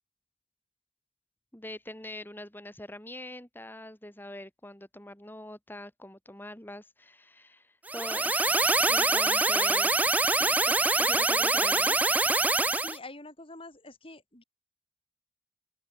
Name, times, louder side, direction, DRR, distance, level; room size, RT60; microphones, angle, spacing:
voice 1, 1.5-8.5 8.9-12.1, left 1 dB, 10° left, 3.5 m, -44 dB
sound 1, 7.9-13.0, right 2 dB, 10° right, 0.4 m, -25 dB
voice 2, 12.7-14.4, left 2 dB, 30° left, 5.1 m, -46 dB
open air
head